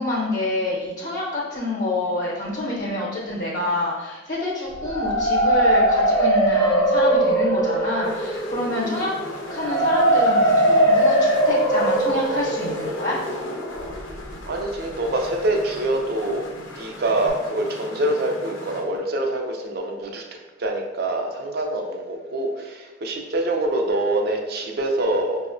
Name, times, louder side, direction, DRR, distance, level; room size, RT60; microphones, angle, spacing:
voice 1, 0.0-9.1 9.5-13.2, left 2 dB, 55° left, -7 dB, 0.8 m, -27 dB
sound 1, 4.7-14.6, right 1 dB, 15° left, 0.5 m, -21 dB
sound 2, 7.8-18.9, left 2 dB, 85° left, 0.6 m, -38 dB
voice 2, 14.5-16.5 16.7-20.2 20.6-25.4, right 1 dB, 55° right, 2 dB, 0.5 m, -25 dB
5.5 x 2.0 x 2.5 m, 1.2 s
head